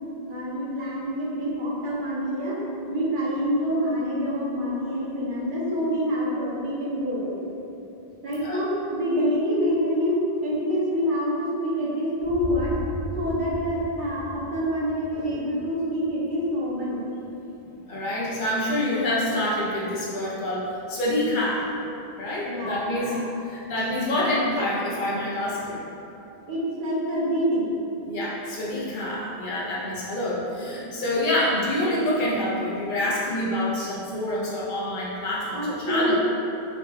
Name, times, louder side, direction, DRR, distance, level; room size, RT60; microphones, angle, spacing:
voice 1, 0.2-2.6 2.9-7.3 8.2-12.7 13.2-17.0 22.5-23.2 26.5-27.7 35.5-36.2, equal, 55° right, -6 dB, 0.8 m, -26 dB
sound 1, 12.2-16.2, equal, 90° left, 1.2 m, -36 dB
voice 2, 17.9-21.7 22.2-23.2 23.5-25.8 28.1-36.2, left 1 dB, 55° left, -6 dB, 0.7 m, -27 dB
3.0 x 2.2 x 3.1 m, 2.9 s
omnidirectional pair, 1.1 m